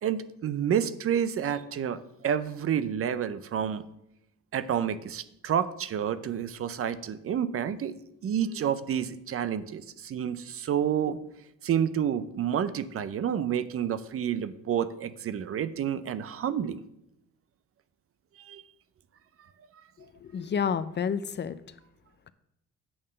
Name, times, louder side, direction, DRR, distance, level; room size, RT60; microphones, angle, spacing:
voice 1, 0.0-3.8 4.5-7.9 8.2-11.2 11.6-16.8 18.4-18.6, right 9 dB, 50° right, 14 dB, 0.5 m, -29 dB
voice 2, 20.0-21.6, left 7 dB, 35° left, 13 dB, 0.4 m, -30 dB
8.7 x 3.6 x 6.6 m, 0.79 s
cardioid pair, 90°, 30 cm